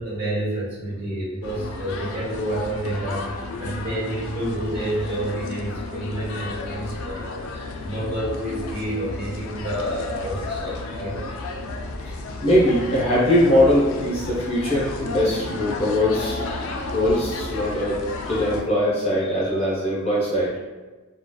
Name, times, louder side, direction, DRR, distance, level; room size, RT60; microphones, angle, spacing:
voice 1, 0.0-11.2, right 1 dB, 45° right, -8 dB, 1.1 m, -29 dB
sound 1, 1.4-18.6, left 3 dB, 75° left, 0.3 m, -33 dB
voice 2, 12.4-16.4 16.9-18.0 18.3-20.6, left 1 dB, 30° left, -7 dB, 0.6 m, -21 dB
2.9 x 2.2 x 2.2 m, 1.2 s
head